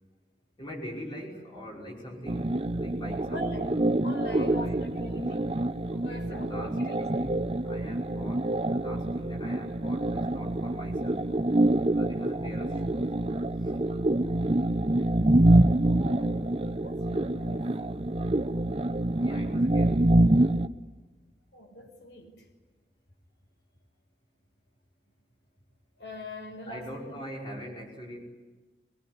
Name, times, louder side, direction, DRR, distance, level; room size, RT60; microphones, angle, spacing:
voice 1, 0.6-3.6 4.3-4.9 5.9-11.2 11.9-13.2 13.6-13.9 19.2-20.1 26.7-28.3, equal, 25° left, -1 dB, 5.5 m, -42 dB
sound 1, 2.3-20.7, right 1 dB, 35° right, 0.8 m, -26 dB
voice 2, 3.3-3.7 4.0-5.5 6.0-7.3 15.8-17.7 21.5-22.5 26.0-27.2, left 1 dB, 80° left, 4 dB, 5.7 m, -42 dB
24.0 x 23.0 x 9.7 m, 1.3 s
head